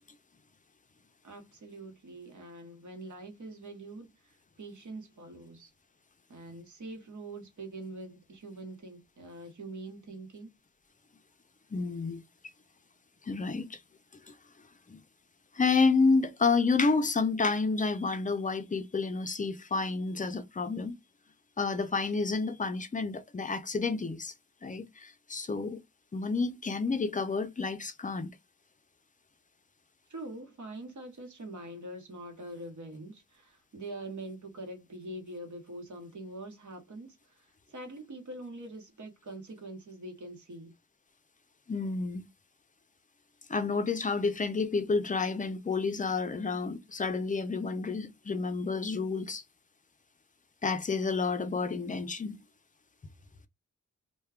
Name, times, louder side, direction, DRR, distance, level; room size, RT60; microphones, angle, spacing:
voice 1, 1.2-5.7 6.3-10.5 30.1-40.7, right 2 dB, 65° right, 1.0 m, -44 dB
voice 2, 11.7-12.2 13.3-13.8 14.3-14.4 14.9-15.0 15.5-20.9 21.6-24.3 24.6-25.8 26.1-28.3 41.7-42.2 43.5-49.4 50.6-52.4, left 4 dB, 25° left, 0.3 m, -30 dB
2.2 x 2.2 x 3.4 m
wide cardioid pair, 135°, 32 cm